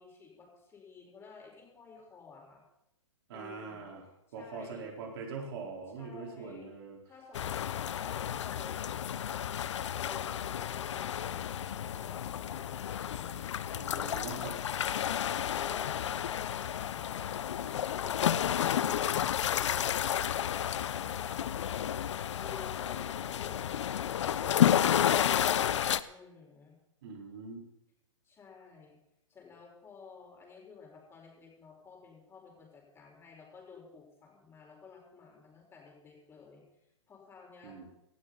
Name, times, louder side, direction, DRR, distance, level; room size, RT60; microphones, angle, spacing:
voice 1, 0.0-2.6 3.3-3.9 4.3-4.9 6.0-6.7 7.0-9.3 9.9-15.1 15.5-18.4 18.8-21.6 22.4-26.8 28.2-29.0 29.3-36.6 37.1-37.8, left 5 dB, 15° left, -1 dB, 4.9 m, -53 dB
voice 2, 3.3-4.0 4.3-7.0 13.7-14.5 27.0-27.6 37.6-37.9, right 4 dB, 50° right, 0 dB, 4.3 m, -42 dB
sound 1, 7.3-26.0, left 10 dB, 65° left, 0.8 m, -31 dB
18.0 x 13.5 x 4.1 m, 0.83 s
hypercardioid pair, 135°, 17 cm